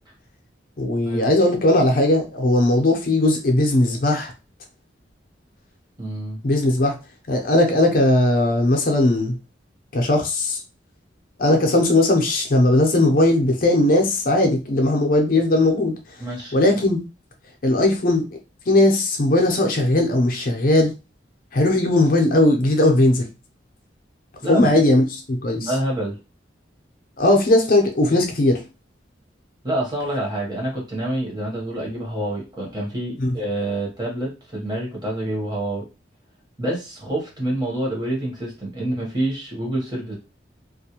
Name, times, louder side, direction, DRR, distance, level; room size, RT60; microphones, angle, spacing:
voice 1, 0.8-4.3 6.4-7.0 7.3-9.4 9.9-10.6 11.4-16.2 16.5-17.0 17.6-18.3 18.7-20.9 21.5-23.3 24.5-25.7 27.2-28.6 33.2-33.4, left 1 dB, 50° left, 0.5 m, -18 dB
voice 2, 6.0-6.4 16.2-16.6 24.4-24.7 25.5-26.1 29.6-35.8 36.6-40.1, right 1 dB, 25° right, 0.9 m, -27 dB
2.3 x 2.1 x 2.8 m
head